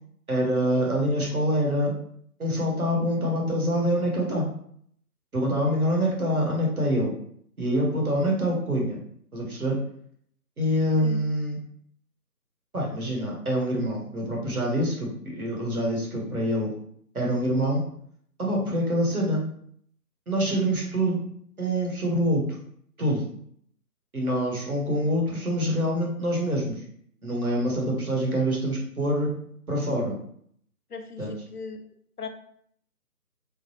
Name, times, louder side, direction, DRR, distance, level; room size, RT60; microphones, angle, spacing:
voice 1, 0.3-1.9 2.4-4.5 5.3-7.1 7.6-9.0 9.3-9.8 10.6-11.6 12.7-16.7 17.1-17.8 18.4-19.4 20.3-21.3 21.6-22.4 23.0-23.2 24.1-26.8 27.2-29.3 29.7-30.2 31.2-31.3, equal, 60° right, -1 dB, 1.3 m, -25 dB
voice 2, 30.9-31.8 32.2-32.3, left 4 dB, 70° left, 5 dB, 0.6 m, -37 dB
3.8 x 2.2 x 2.9 m, 0.65 s
figure-of-eight pair, 160°, 48 cm